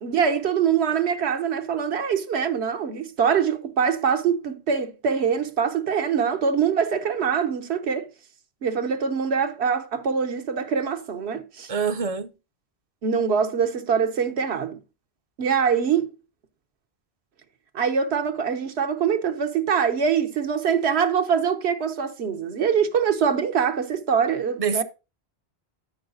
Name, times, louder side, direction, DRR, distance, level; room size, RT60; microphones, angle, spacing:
voice 1, 0.0-8.1 8.6-11.7 13.0-14.8 15.4-16.1 17.7-24.8, right 7 dB, 90° right, 1.1 m, -24 dB
voice 2, 11.7-12.3 24.6-24.8, right 6 dB, 50° right, 0.5 m, -25 dB
13.5 x 5.4 x 2.5 m
omnidirectional pair, 1.1 m